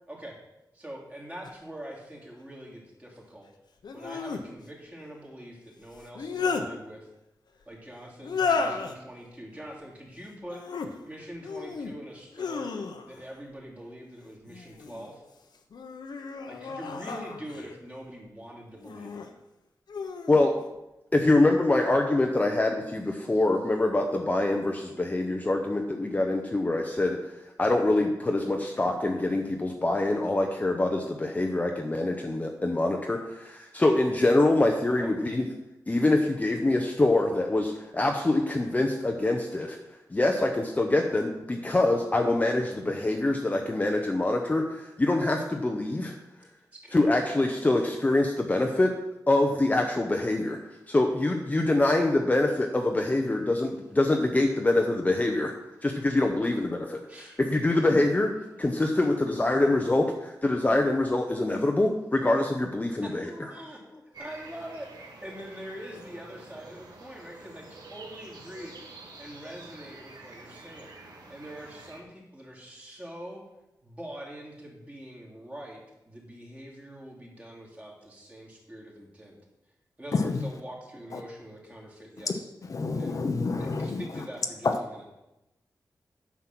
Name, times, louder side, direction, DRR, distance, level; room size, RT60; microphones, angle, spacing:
voice 1, 0.1-0.4 0.7-3.5 3.9-7.1 7.7-12.7 13.0-15.2 16.5-19.2 28.6-28.7 34.9-35.4 46.7-47.3 56.4-56.5 57.1-57.4 63.0-63.8 64.2-68.8 69.2-70.9 71.3-73.4 73.8-79.4 80.0-82.5 83.0-83.2 83.6-85.0, equal, 20° right, -3 dB, 2.9 m, -44 dB
sound 1, 1.4-1.5 3.8-4.4 6.0-6.7 8.2-8.9 10.4-10.9 11.4-11.9 12.3-13.2 14.5-15.1 15.7-17.7 18.8-19.3 19.9-20.4, left 4 dB, 80° left, 1.0 m, -33 dB
voice 2, 20.3-20.6 21.1-27.2 27.6-35.4 35.9-39.8 40.1-46.1 46.9-48.9 49.3-50.6 50.9-55.5 55.8-57.0 57.4-58.3 58.6-63.3, left 2 dB, 20° left, 3 dB, 0.8 m, -25 dB
sound 2, 64.1-72.0, right 3 dB, 75° right, 1.8 m, -48 dB
voice 3, 80.1-80.5 81.1-81.2 82.2-84.3 84.6-84.7, left 4 dB, 50° left, 5 dB, 0.8 m, -29 dB
9.6 x 7.3 x 6.1 m, 0.95 s
wide cardioid pair, 140°, 7 cm